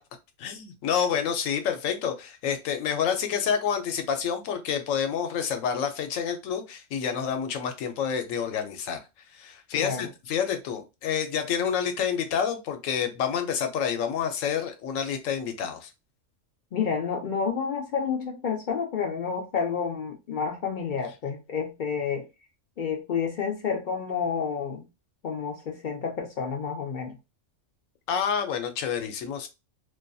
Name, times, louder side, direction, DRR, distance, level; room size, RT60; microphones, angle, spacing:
voice 1, 0.4-9.0 9.3-15.9 28.1-29.5, left 7 dB, 90° left, 1.0 m, -28 dB
voice 2, 9.8-10.1 16.7-22.3 22.8-24.9 25.2-27.2, left 6 dB, 65° left, 0.4 m, -29 dB
2.5 x 2.3 x 2.5 m
omnidirectional pair, 1.3 m